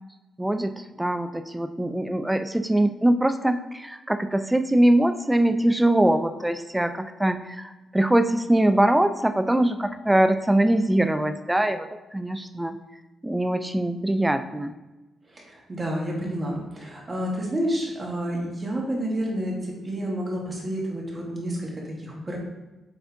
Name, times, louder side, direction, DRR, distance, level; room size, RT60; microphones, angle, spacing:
voice 1, 0.4-12.8 13.2-14.7, right 1 dB, 10° right, 9 dB, 0.4 m, -22 dB
voice 2, 15.3-22.4, equal, 25° right, -2 dB, 2.0 m, -29 dB
8.0 x 3.6 x 3.6 m, 1.1 s
cardioid pair, 90°, 0 cm